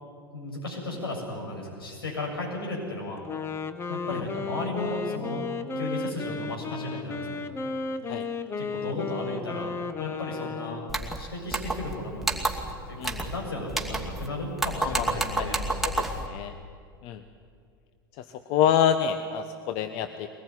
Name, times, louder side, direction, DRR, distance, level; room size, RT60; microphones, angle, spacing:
voice 1, 0.3-3.2 3.9-5.5 5.8-7.4 8.6-10.8 11.1-15.7, left 2 dB, 80° left, -1 dB, 7.4 m, -35 dB
Wind instrument woodwind instrument, 3.2-11.1, left 4 dB, 20° left, 1.2 m, -34 dB
sound 1, 10.9-11.2 11.5-11.9 12.2-12.7 13.0-13.4 13.7-14.3 14.6-16.3, right 2 dB, ahead, 2.5 m, -29 dB
voice 2, 14.8-15.5 15.8-16.5 17.0-17.2 18.2-20.3, left 9 dB, 45° left, 9 dB, 1.1 m, -27 dB
22.5 x 19.5 x 9.8 m, 2.3 s
figure-of-eight pair, 85°, 12 cm